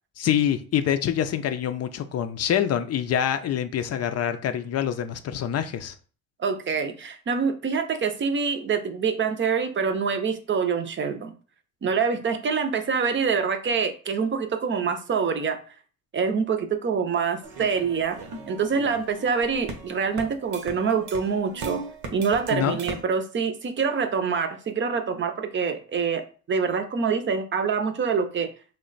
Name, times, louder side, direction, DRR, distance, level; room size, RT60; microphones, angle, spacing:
voice 1, 0.2-5.9 22.5-22.8, left 9 dB, 55° left, 0.5 m, -25 dB
voice 2, 6.4-11.3 11.8-15.6 16.1-18.2 18.5-21.8 22.1-28.5, right 5 dB, 40° right, 0.6 m, -25 dB
sound 1, 17.4-23.0, right 3 dB, 80° right, 0.8 m, -37 dB
3.2 x 2.2 x 3.9 m
cardioid pair, 90°, 30 cm